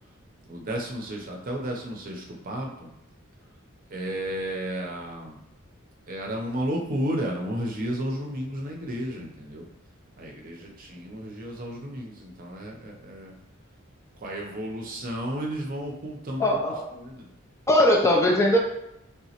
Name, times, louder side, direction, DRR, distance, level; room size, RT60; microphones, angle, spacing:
voice 1, 0.5-2.9 3.9-5.4 6.1-9.6 10.2-13.4 14.2-17.3, equal, 45° right, 0 dB, 0.6 m, -33 dB
voice 2, 16.4-16.9 17.7-18.6, left 1 dB, 15° left, 0 dB, 0.4 m, -20 dB
3.4 x 2.9 x 2.8 m, 0.84 s
head